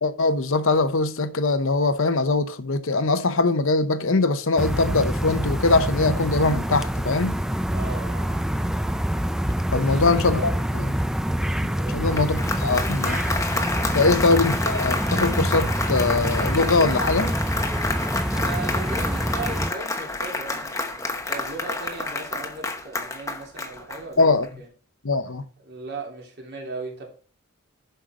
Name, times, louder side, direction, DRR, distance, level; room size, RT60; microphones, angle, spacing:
voice 1, 0.0-7.4 9.7-10.9 11.9-13.2 13.9-17.3 24.2-24.5 25.0-25.4, left 3 dB, 65° left, 0.8 m, -22 dB
sound 1, 4.6-19.7, equal, ahead, 0.3 m, -26 dB
voice 2, 7.7-8.5 9.7-10.5 11.8-12.8 18.3-24.7 25.6-27.1, right 3 dB, 50° right, 3.2 m, -37 dB
Applause, 12.0-24.5, left 2 dB, 15° left, 0.9 m, -29 dB
11.5 x 5.6 x 3.7 m
head